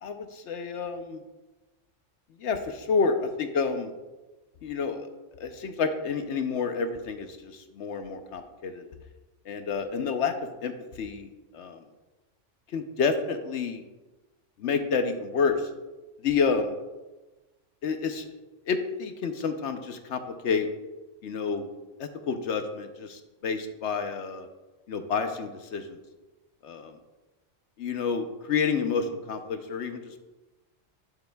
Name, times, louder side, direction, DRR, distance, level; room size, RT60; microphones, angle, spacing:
voice 1, 0.0-1.2 2.4-3.9 4.6-5.1 5.4-8.8 9.5-11.3 11.5-11.8 12.7-13.8 14.6-15.7 16.2-16.7 17.8-18.3 18.7-20.7 21.2-21.7 22.0-24.5 24.9-26.0 26.6-26.9 27.8-30.3, left 5 dB, 65° left, 7 dB, 0.9 m, -29 dB
11.5 x 7.0 x 2.2 m, 1.2 s
omnidirectional pair, 1.3 m